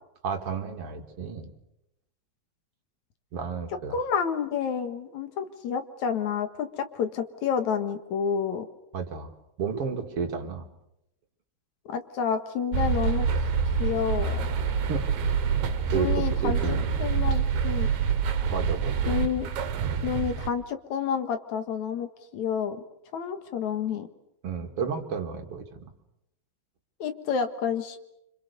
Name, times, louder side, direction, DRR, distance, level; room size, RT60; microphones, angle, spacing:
voice 1, 0.2-1.5 3.3-4.0 8.9-9.3 9.6-10.6 14.9-15.4 15.9-17.1 18.5-19.2 24.4-25.8, right 6 dB, 55° right, 4 dB, 3.0 m, -32 dB
voice 2, 3.9-8.7 11.9-13.3 13.8-14.5 15.9-17.9 19.1-19.5 20.0-22.8 23.1-24.1 27.0-28.0, left 7 dB, 80° left, 8 dB, 3.0 m, -29 dB
sound 1, 12.7-20.5, right 6 dB, 75° right, 2.8 m, -26 dB
27.5 x 26.5 x 6.8 m, 0.82 s
omnidirectional pair, 3.3 m